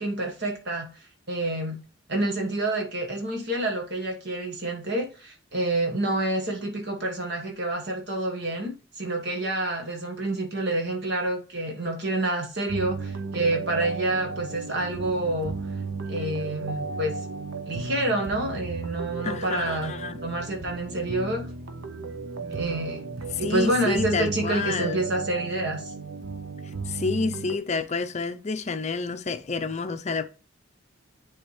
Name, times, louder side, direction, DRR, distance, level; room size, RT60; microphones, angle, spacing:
voice 1, 0.0-1.8 2.1-15.6 16.1-17.2 17.7-19.9 20.2-21.5 22.5-23.0 23.4-25.9, right 1 dB, 55° right, 1.4 m, -28 dB
sound 1, 12.7-27.6, right 4 dB, 75° right, 0.7 m, -35 dB
voice 2, 19.2-20.2 23.4-25.0 26.9-30.3, left 4 dB, 35° left, 0.5 m, -29 dB
10.0 x 3.5 x 3.2 m
head